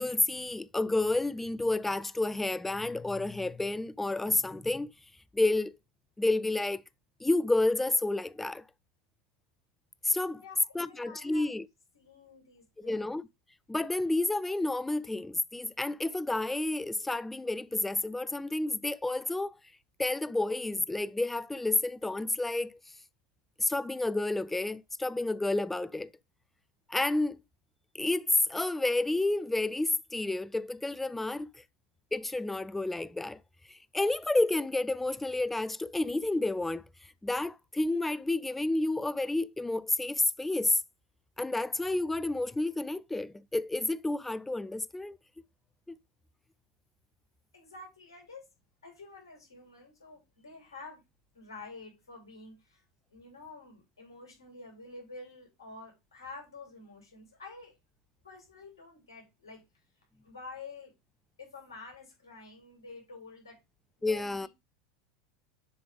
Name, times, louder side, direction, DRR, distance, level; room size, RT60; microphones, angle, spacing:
voice 1, 0.0-4.9 5.3-5.7 6.2-6.8 7.2-8.6 10.0-10.4 10.7-11.7 12.8-13.3 13.7-19.5 20.0-22.8 23.6-26.1 26.9-27.4 27.9-31.5 32.1-33.4 33.7-36.8 37.2-40.8 41.4-45.2 45.9-46.0 64.0-64.5, left 2 dB, 10° left, 0.4 m, -30 dB
voice 2, 10.4-11.5 11.9-13.1 47.5-48.4 48.8-51.0 51.3-52.8 53.1-57.8 58.2-59.6 60.2-60.9 61.4-63.6 64.0-64.5, left 3 dB, 85° left, 3.1 m, -49 dB
7.0 x 3.4 x 4.9 m
hypercardioid pair, 90°, 2 cm